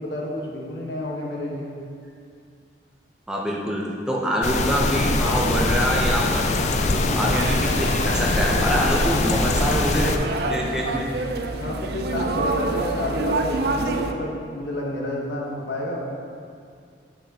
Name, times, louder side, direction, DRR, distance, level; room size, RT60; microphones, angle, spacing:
voice 1, 0.0-1.7 6.8-7.2 10.6-11.0 11.6-16.1, left 1 dB, 75° left, -3 dB, 1.2 m, -30 dB
voice 2, 3.3-6.5 6.9-10.2 10.5-11.1, equal, 5° right, -4 dB, 0.6 m, -25 dB
sound 1, 4.4-10.2, left 2 dB, 40° left, 0.4 m, -22 dB
sound 2, 7.2-14.1, right 3 dB, 60° right, 0.4 m, -28 dB
7.7 x 6.3 x 2.8 m, 2.3 s
head